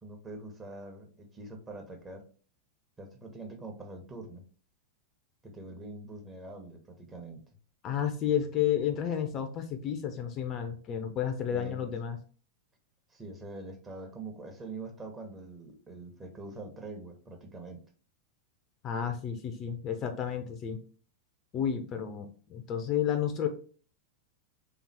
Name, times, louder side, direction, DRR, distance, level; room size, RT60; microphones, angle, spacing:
voice 1, 0.0-2.2 3.0-4.5 5.4-7.4 11.5-11.9 13.1-17.8, right 2 dB, 20° right, 3 dB, 1.0 m, -44 dB
voice 2, 7.8-12.2 18.8-20.8 21.5-23.5, left 9 dB, 35° left, 7 dB, 0.6 m, -31 dB
3.5 x 3.0 x 4.0 m, 0.41 s
figure-of-eight pair, 90°, 0 cm